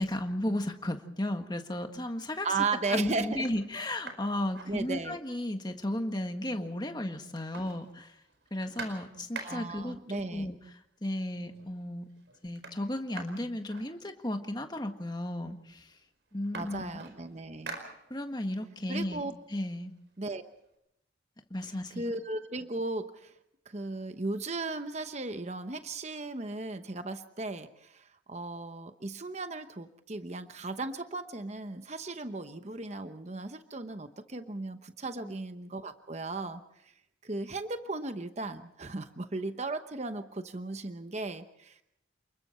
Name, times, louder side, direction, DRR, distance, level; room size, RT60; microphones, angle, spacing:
voice 1, 0.0-2.5 2.9-8.1 8.5-10.6 11.0-12.0 12.4-15.9 16.3-17.0 18.1-19.2 19.5-19.9 21.5-22.0, left 1 dB, 20° left, 5 dB, 1.6 m, -34 dB
sound 1, 1.9-2.4 2.9-3.0 3.3-5.4 5.7-5.8 6.1-6.9 7.2-9.9 10.8-10.9 11.3-11.8 12.1-14.5 15.3-15.4 15.7-18.5 18.9-20.7, right 3 dB, 65° right, 4.8 m, -47 dB
voice 2, 2.4-3.5 4.7-5.2 9.4-10.5 16.5-17.8 18.9-19.3 20.2-20.4 21.9-23.3 23.7-36.9 37.2-41.8, right 3 dB, 35° right, 9 dB, 0.9 m, -36 dB
29.5 x 21.5 x 4.4 m, 0.80 s
head